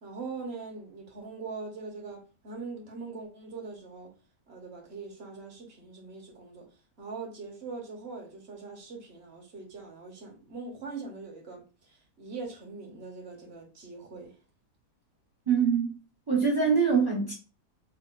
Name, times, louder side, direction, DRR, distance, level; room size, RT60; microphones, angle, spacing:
voice 1, 0.0-4.1 4.5-6.7 7.0-14.3, right 4 dB, 50° right, 0.9 m, -42 dB
voice 2, 15.5-16.0 16.3-17.3, right 6 dB, 30° right, 0.4 m, -24 dB
4.1 x 2.2 x 2.2 m
omnidirectional pair, 1.8 m